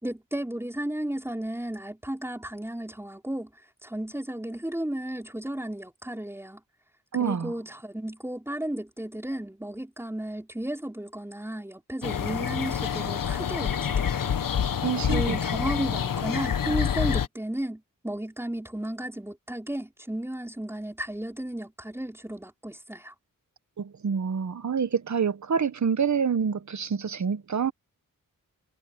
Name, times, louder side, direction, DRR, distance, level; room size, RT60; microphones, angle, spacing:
voice 1, 0.0-3.5 3.8-6.6 7.2-14.3 15.1-23.1, right 1 dB, 5° right, 4.4 m, -34 dB
voice 2, 7.1-7.5 14.8-15.4 23.8-27.7, right 6 dB, 55° right, 1.1 m, -27 dB
sound 1, 12.0-17.3, left 8 dB, 70° left, 1.0 m, -27 dB
wide cardioid pair, 100°, 34 cm